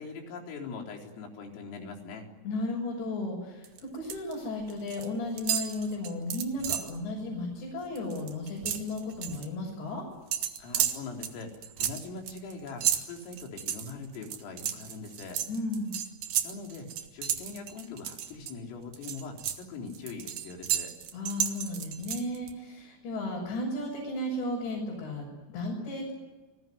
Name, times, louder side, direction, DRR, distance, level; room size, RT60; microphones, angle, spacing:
voice 1, 0.0-2.3 10.6-15.4 16.4-20.9, left 4 dB, 90° left, 2 dB, 6.6 m, -42 dB
voice 2, 2.5-10.1 15.5-15.9 21.1-26.1, left 2 dB, 60° left, -3 dB, 8.9 m, -34 dB
sound 1, 3.6-4.3 4.6-5.1 5.4-7.0 7.4-7.6 7.8-9.5 10.3-18.5 18.9-22.5, right 10 dB, 60° right, 2.8 m, -33 dB
29.5 x 20.0 x 9.4 m, 1.1 s
omnidirectional pair, 5.7 m